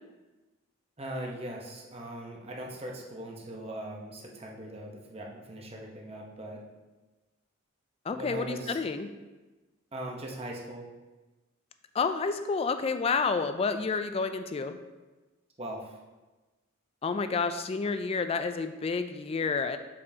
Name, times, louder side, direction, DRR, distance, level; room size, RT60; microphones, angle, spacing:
voice 1, 1.0-6.6 8.1-8.8 9.9-10.9 15.6-16.0, right 1 dB, 30° right, -1 dB, 0.9 m, -40 dB
voice 2, 8.1-9.1 11.9-14.8 17.0-19.8, left 4 dB, 30° left, 9 dB, 0.3 m, -29 dB
6.8 x 5.3 x 2.8 m, 1.2 s
head